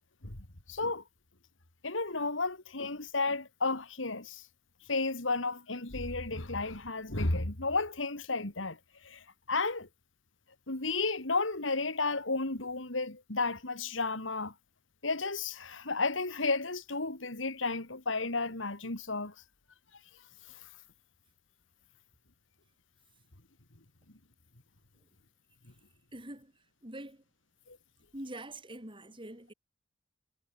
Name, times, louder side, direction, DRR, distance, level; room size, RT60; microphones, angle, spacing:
voice 1, 0.7-1.0 1.8-4.4 4.9-8.8 9.0-9.9 10.7-14.5 15.0-19.3 27.7-27.8, left 3 dB, 85° left, 3.2 m, -33 dB
voice 2, 26.1-26.5 26.8-27.2 28.1-29.5, right 1 dB, 25° right, 7.4 m, -44 dB
head